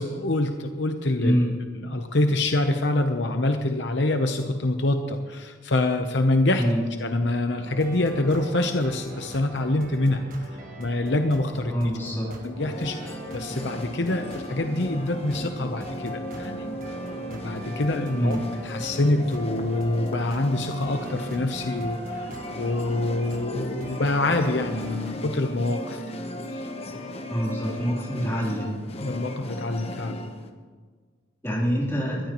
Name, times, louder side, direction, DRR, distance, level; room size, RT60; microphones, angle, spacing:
voice 1, 0.0-1.4 1.7-6.6 7.0-10.5 10.8-11.7 12.4-17.0 17.3-18.4 18.6-26.0 26.5-26.7 29.0-30.2, left 2 dB, 60° left, 5 dB, 0.8 m, -26 dB
voice 2, 1.2-1.5 6.6-6.8 11.7-12.3 18.1-18.5 27.3-28.7 31.4-32.2, equal, 15° left, -5 dB, 3.4 m, -25 dB
sound 1, 7.6-25.1, right 1 dB, 45° right, 1.5 m, -42 dB
sound 2, 12.6-30.5, left 1 dB, 30° left, 1.0 m, -36 dB
21.0 x 13.5 x 3.1 m, 1.5 s
head